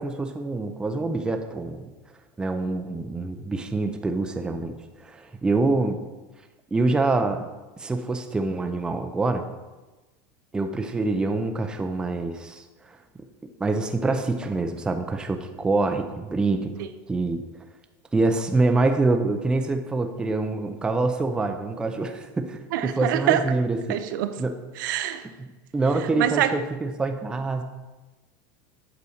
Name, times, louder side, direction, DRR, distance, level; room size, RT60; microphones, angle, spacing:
voice 1, 0.0-1.9 2.4-6.1 6.7-7.5 7.8-9.4 10.5-13.0 13.6-16.7 17.1-17.4 18.1-24.0 24.4-24.6 25.4-27.6, right 3 dB, 10° right, 6 dB, 0.4 m, -25 dB
voice 2, 22.7-23.4 23.9-24.3 24.8-25.2 26.2-26.5, right 12 dB, 75° right, 9 dB, 0.6 m, -24 dB
8.4 x 4.1 x 6.3 m, 1.2 s
supercardioid pair, 155°, 11 cm